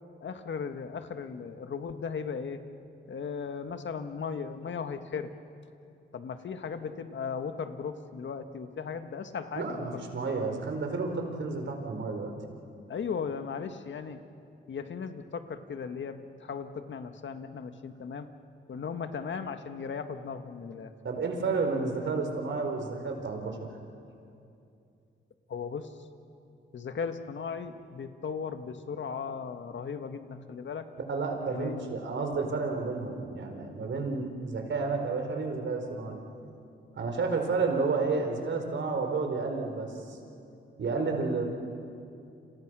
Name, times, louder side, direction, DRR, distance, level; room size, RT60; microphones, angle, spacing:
voice 1, 0.2-2.6 3.1-5.3 6.1-9.9 12.9-14.2 14.7-18.3 18.7-20.9 25.5-25.9 26.7-30.9 31.5-32.0, left 6 dB, 60° left, 8 dB, 1.7 m, -37 dB
voice 2, 9.6-12.3 21.0-23.6 31.1-36.2 36.9-40.2 40.8-41.4, right 4 dB, 65° right, 4 dB, 4.4 m, -31 dB
30.0 x 27.0 x 6.3 m, 2.6 s
cardioid pair, 80°, 21 cm